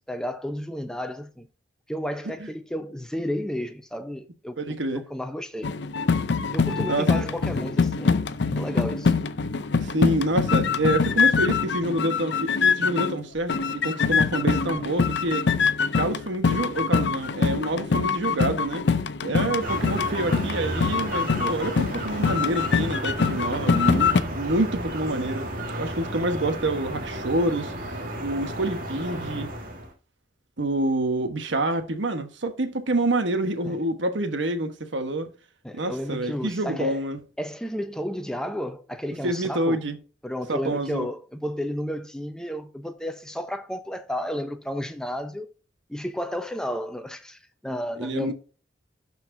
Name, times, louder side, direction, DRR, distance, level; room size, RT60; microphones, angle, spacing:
voice 1, 0.1-1.5 1.9-5.7 6.5-8.2 8.5-9.1 33.6-33.8 35.6-37.0 37.4-39.8 40.2-45.5 45.9-48.3, equal, 5° left, 0.7 m, -32 dB
voice 2, 4.6-5.0 6.9-7.3 9.8-15.5 16.0-18.9 19.2-25.5 25.8-27.7 28.2-29.5 30.6-35.3 35.7-37.2 39.2-40.0 40.5-41.1 48.0-48.3, right 1 dB, 80° right, 1.2 m, -27 dB
sound 1, 5.6-13.2 13.5-24.2, left 5 dB, 65° left, 0.5 m, -24 dB
sound 2, 19.6-29.9, right 1 dB, 45° right, 1.6 m, -33 dB
12.0 x 4.4 x 2.6 m
head